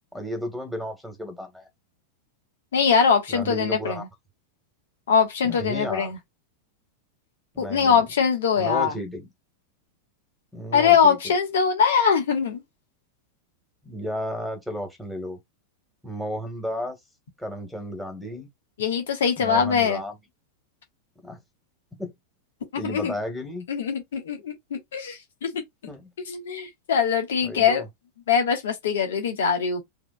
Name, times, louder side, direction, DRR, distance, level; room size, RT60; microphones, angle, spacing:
voice 1, 0.1-1.7 3.3-4.0 5.4-6.1 7.5-8.0 8.6-9.3 10.5-11.3 13.8-15.4 16.0-17.0 17.4-18.5 19.4-20.2 21.2-21.4 22.0-22.1 22.7-23.7 25.9-26.1 27.4-27.9, equal, ahead, 1.7 m, -33 dB
voice 2, 2.7-4.0 5.1-6.2 7.6-8.9 10.7-12.6 18.8-20.0 22.7-23.1 23.7-25.6 26.3-27.8 28.3-29.8, left 6 dB, 60° left, 1.2 m, -22 dB
4.9 x 2.9 x 2.2 m
figure-of-eight pair, 90°, 0 cm